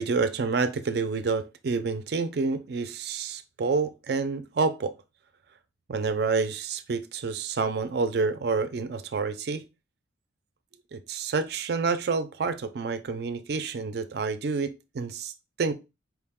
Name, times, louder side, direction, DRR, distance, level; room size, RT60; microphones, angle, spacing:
voice 1, 0.0-5.0 5.9-9.6 10.9-15.3 15.6-15.7, right 4 dB, 55° right, 0.4 m, -28 dB
4.6 x 2.2 x 3.5 m
head